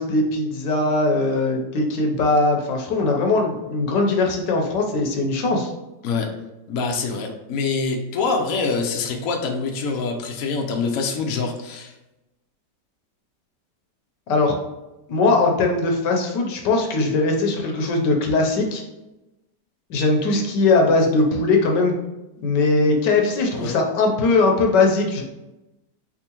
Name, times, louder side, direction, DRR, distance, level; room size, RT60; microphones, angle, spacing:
voice 1, 0.0-5.7 14.3-14.6 15.1-18.8 19.9-22.0 22.4-25.2, left 3 dB, 80° left, 2 dB, 1.4 m, -20 dB
voice 2, 6.7-11.9 23.5-23.8, left 4 dB, 60° left, 2 dB, 0.9 m, -25 dB
4.4 x 3.6 x 2.9 m, 0.99 s
omnidirectional pair, 1.9 m